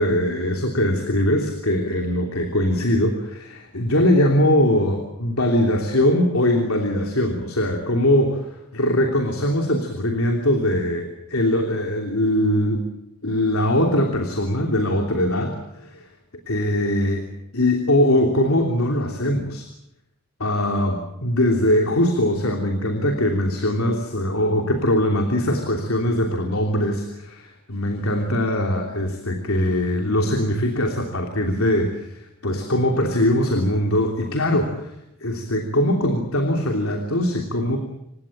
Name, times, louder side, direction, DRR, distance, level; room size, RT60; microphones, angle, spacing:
voice 1, 0.0-12.8 13.2-16.0 16.5-17.2 17.5-19.7 20.4-35.0 35.2-37.8, left 1 dB, 75° left, 3 dB, 3.1 m, -21 dB
28.5 x 17.0 x 8.7 m, 0.85 s
head